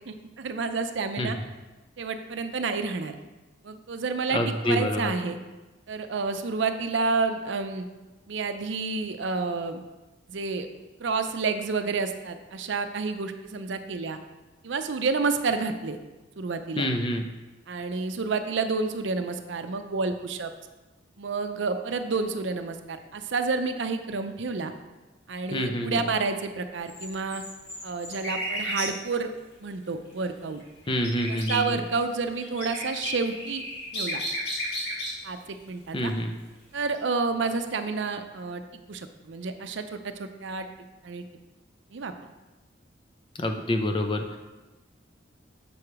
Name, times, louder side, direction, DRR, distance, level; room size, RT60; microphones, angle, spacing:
voice 1, 0.1-1.4 2.0-3.1 3.6-5.4 5.9-7.8 8.3-9.8 10.3-10.7 11.0-14.2 14.6-16.0 16.4-16.9 17.7-20.5 21.2-24.7 25.3-27.4 27.8-29.3 29.6-30.6 31.3-33.6 33.9-34.2 35.2-35.4 35.7-36.1 36.7-38.6 38.9-40.7 41.0-41.2 41.9-42.1, right 4 dB, 70° right, 8 dB, 0.5 m, -29 dB
voice 2, 4.3-5.1 16.8-17.3 25.5-26.0 30.9-31.8 35.9-36.3 43.4-44.4, left 1 dB, 25° left, 5 dB, 0.5 m, -27 dB
sound 1, 26.8-28.9 30.6-31.5 32.0-35.1 35.9-36.1 36.9-37.0, equal, 55° left, 2.2 m, -33 dB
6.9 x 4.8 x 4.7 m, 1.1 s
head